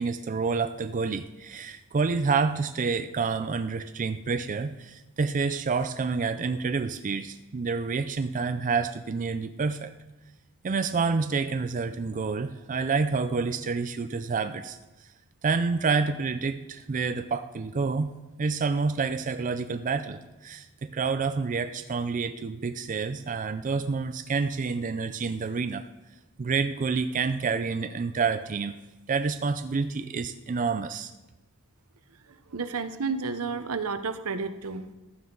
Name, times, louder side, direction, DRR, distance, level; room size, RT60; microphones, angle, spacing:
voice 1, 0.0-9.9 10.6-15.1 15.4-18.1 18.4-25.8 26.4-28.8 29.1-31.1, right 4 dB, 35° right, 10 dB, 0.4 m, -28 dB
voice 2, 32.5-34.9, right 4 dB, 80° right, 11 dB, 0.8 m, -31 dB
15.0 x 11.5 x 3.9 m, 1.1 s
head